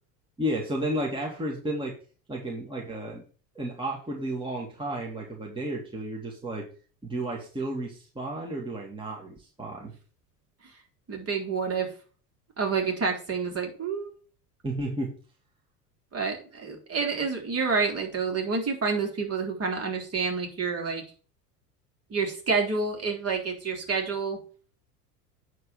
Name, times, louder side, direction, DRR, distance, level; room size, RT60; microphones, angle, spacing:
voice 1, 0.4-2.0 2.3-3.2 3.5-6.7 7.0-9.9 14.6-15.1, right 1 dB, 10° right, -2 dB, 2.4 m, -32 dB
voice 2, 11.1-11.9 12.6-14.1 16.1-21.0 22.1-24.4, right 5 dB, 30° right, 2 dB, 3.6 m, -28 dB
9.3 x 4.0 x 7.2 m, 0.39 s
figure-of-eight pair, 75°, 47 cm